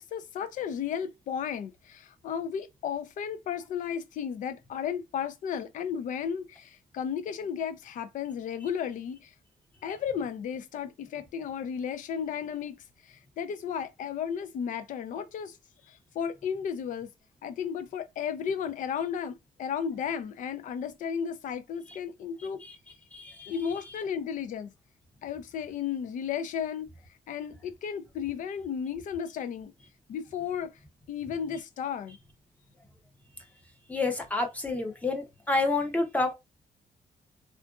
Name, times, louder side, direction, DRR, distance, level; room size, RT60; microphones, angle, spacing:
voice 1, 0.0-9.3 9.8-12.8 13.0-15.6 15.9-17.1 17.4-22.6 23.5-24.7 25.2-26.9 27.3-29.7 30.1-30.7 31.1-32.2, left 7 dB, 60° left, 0.5 m, -34 dB
voice 2, 22.4-22.8 23.1-23.6 23.9-24.0 33.9-36.3, left 3 dB, 10° left, 0.6 m, -29 dB
3.6 x 2.5 x 2.3 m
wide cardioid pair, 180°, 15 cm